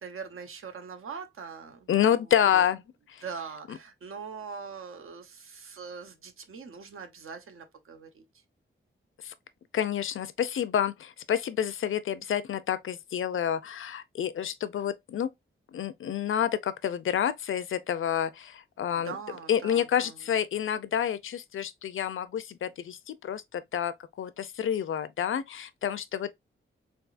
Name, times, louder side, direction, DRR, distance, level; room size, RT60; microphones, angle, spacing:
voice 1, 0.0-2.7 3.2-8.2 18.9-20.3, right 6 dB, 80° right, 0.9 m, -42 dB
voice 2, 1.9-2.8 3.7-3.8 9.2-9.3 9.7-15.3 15.7-19.1 19.5-26.3, left 9 dB, 70° left, 0.5 m, -29 dB
3.8 x 3.5 x 2.5 m
wide cardioid pair, 135°, 21 cm